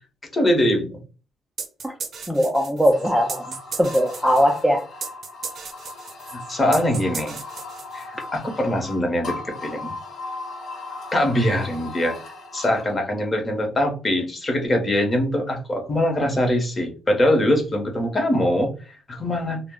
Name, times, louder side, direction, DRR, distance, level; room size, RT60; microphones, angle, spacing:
voice 1, 0.3-1.0 6.3-7.3 7.9-9.9 11.1-12.2 12.5-19.6, left 1 dB, 30° left, 3 dB, 1.0 m, -22 dB
sound 1, 1.6-8.3, right 5 dB, 55° right, 0.5 m, -36 dB
voice 2, 2.3-3.4 3.8-4.8, equal, ahead, 1 dB, 0.5 m, -20 dB
sound 2, 2.9-13.0, left 3 dB, 65° left, 0.9 m, -38 dB
2.3 x 2.0 x 3.7 m, 0.35 s
cardioid pair, 90°, 0 cm